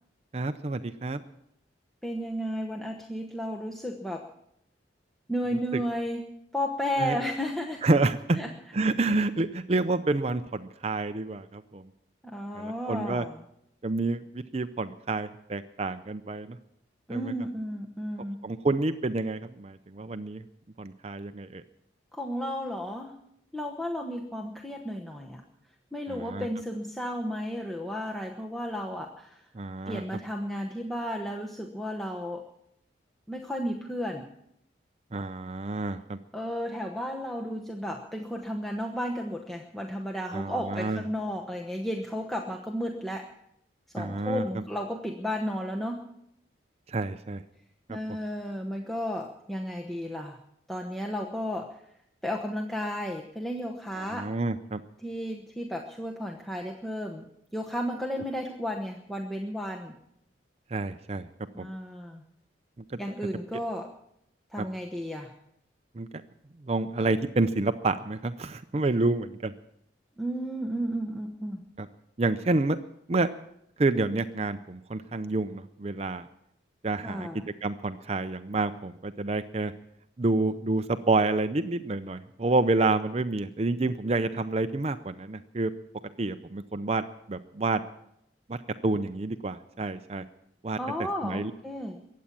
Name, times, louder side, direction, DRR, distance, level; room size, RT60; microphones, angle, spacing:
voice 1, 0.3-1.2 5.7-5.8 7.0-7.2 7.8-8.4 8.7-11.8 12.5-13.3 13.8-16.6 17.1-17.3 18.4-20.4 20.8-21.6 26.1-26.5 29.5-30.0 35.1-36.2 40.3-41.0 44.0-44.6 46.9-47.4 47.9-48.0 53.9-54.8 60.7-61.3 61.6-61.7 62.9-63.0 64.6-64.7 65.9-66.1 66.6-69.5 71.8-71.9 72.2-72.8 73.1-73.3 73.8-76.3 76.8-77.3 77.6-79.7 80.2-85.7 86.2-87.0 87.3-87.8 88.5-88.6 88.8-90.2 90.6-90.8 91.2-91.5, right 2 dB, 35° right, 10 dB, 0.5 m, -28 dB
voice 2, 2.0-4.3 5.3-6.2 6.5-7.9 8.3-8.5 12.2-13.4 17.1-18.6 22.1-23.1 23.5-25.4 25.9-29.5 29.9-32.4 33.3-34.3 36.3-43.3 43.9-46.0 47.9-50.4 50.7-51.7 52.2-54.3 55.0-57.3 57.5-59.9 61.5-62.2 63.0-63.9 64.5-65.3 70.2-71.6 77.0-77.4 90.8-92.0, equal, ahead, 0 dB, 1.0 m, -33 dB
22.5 x 8.5 x 7.5 m, 0.77 s
head